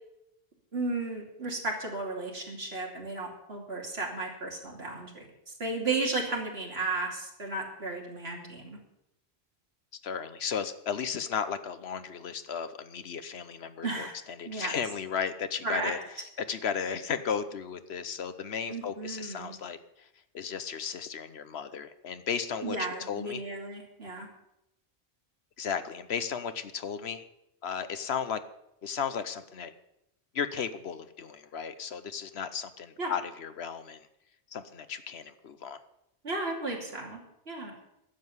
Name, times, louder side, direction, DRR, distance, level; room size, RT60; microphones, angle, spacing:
voice 1, 0.7-8.8 13.8-14.2 14.4-14.8 15.6-15.9 18.7-19.5 22.6-24.3 33.0-33.1 36.2-37.7, right 3 dB, 65° right, 0 dB, 3.0 m, -34 dB
voice 2, 10.0-14.1 14.4-16.0 16.5-20.1 20.3-23.4 25.6-27.2 27.6-28.4 28.8-29.7 30.3-34.0 34.5-35.8, left 7 dB, 70° left, 12 dB, 1.1 m, -35 dB
12.0 x 7.6 x 9.6 m, 0.84 s
omnidirectional pair, 1.1 m